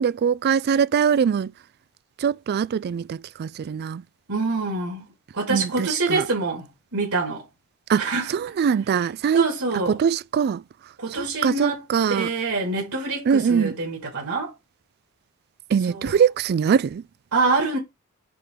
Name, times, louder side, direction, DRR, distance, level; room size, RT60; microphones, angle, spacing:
voice 1, 0.0-1.5 2.2-4.0 5.5-6.3 7.9-9.5 9.9-10.6 11.1-12.3 13.3-13.7 15.7-17.0, right 7 dB, 45° right, 0.3 m, -22 dB
voice 2, 4.3-5.0 5.3-6.7 6.9-7.4 8.0-8.3 9.3-10.0 11.0-11.8 12.1-14.5 15.9-16.1 17.3-17.8, right 3 dB, 75° right, 3.1 m, -25 dB
6.9 x 3.7 x 5.0 m
head